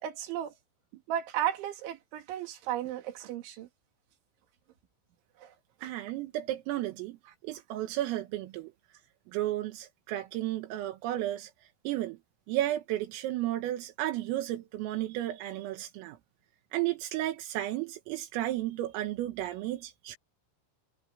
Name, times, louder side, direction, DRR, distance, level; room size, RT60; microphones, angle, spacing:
voice 1, 0.0-0.5 1.1-3.7 5.4-5.5 5.8-5.9, right 11 dB, 70° right, 4.6 m, -34 dB
voice 2, 5.8-7.2 7.4-8.7 9.3-11.5 11.9-12.2 12.5-16.2 16.7-20.2, right 14 dB, 85° right, 4.0 m, -33 dB
omnidirectional pair, 5.9 m